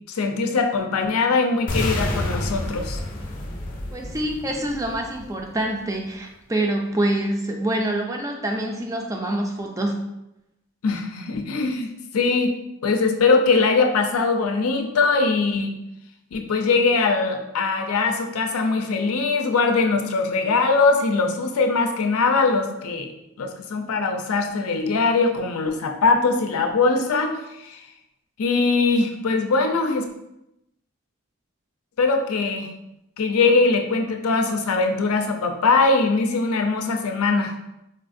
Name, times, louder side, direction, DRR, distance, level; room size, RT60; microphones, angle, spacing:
voice 1, 0.1-3.0 10.8-12.5 12.8-15.7 16.3-23.1 23.4-27.8 28.4-30.1 32.0-32.7 33.2-37.5, left 4 dB, 90° left, 4 dB, 0.5 m, -21 dB
sound 1, 1.7-5.7, left 1 dB, 40° left, 0.5 m, -29 dB
voice 2, 3.9-10.0, right 1 dB, 15° right, 2 dB, 0.3 m, -26 dB
4.4 x 2.4 x 2.5 m, 0.87 s
head